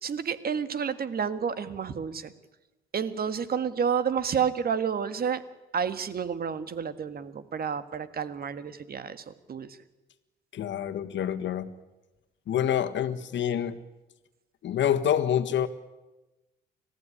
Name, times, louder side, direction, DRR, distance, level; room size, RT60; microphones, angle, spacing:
voice 1, 0.0-2.3 2.9-5.4 5.7-9.7, right 7 dB, 50° right, 12 dB, 1.7 m, -30 dB
voice 2, 10.5-11.7 12.5-13.8 14.6-15.7, left 9 dB, 70° left, 11 dB, 1.6 m, -27 dB
30.0 x 14.5 x 10.0 m, 1.1 s
cardioid pair, 90°, 20 cm